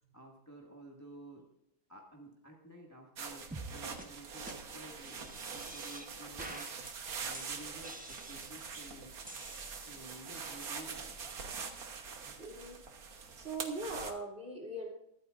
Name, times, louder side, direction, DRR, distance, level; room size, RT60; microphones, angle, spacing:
voice 1, 0.0-1.4 1.9-6.7 7.2-9.1 9.7-12.4, right 1 dB, 10° left, -1 dB, 1.4 m, -53 dB
sound 1, 3.2-14.1, right 5 dB, 50° right, 1.5 m, -44 dB
sound 2, 3.5-3.7 4.0-4.1 4.5-4.6 5.0-6.1 6.4-6.9 7.3-8.7 9.3-10.2, right 1 dB, 10° right, 0.3 m, -48 dB
voice 2, 12.4-12.8 13.1-14.9, right 2 dB, 35° right, -3 dB, 3.1 m, -41 dB
23.0 x 8.7 x 2.5 m, 0.79 s
omnidirectional pair, 2.2 m